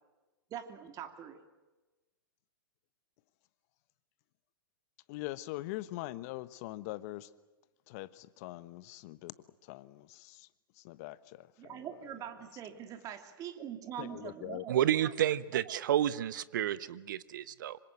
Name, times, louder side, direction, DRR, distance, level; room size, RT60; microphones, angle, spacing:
voice 1, 0.5-1.4 11.6-14.9, right 10 dB, 30° right, 7 dB, 2.8 m, -43 dB
voice 2, 5.1-7.3 7.9-9.3 9.7-10.5 10.8-11.9 14.0-14.6, left 17 dB, 45° left, 16 dB, 1.1 m, -42 dB
voice 3, 14.7-17.8, right 11 dB, 60° right, 16 dB, 1.0 m, -30 dB
26.0 x 24.5 x 7.9 m, 1.1 s
figure-of-eight pair, 110°, 12 cm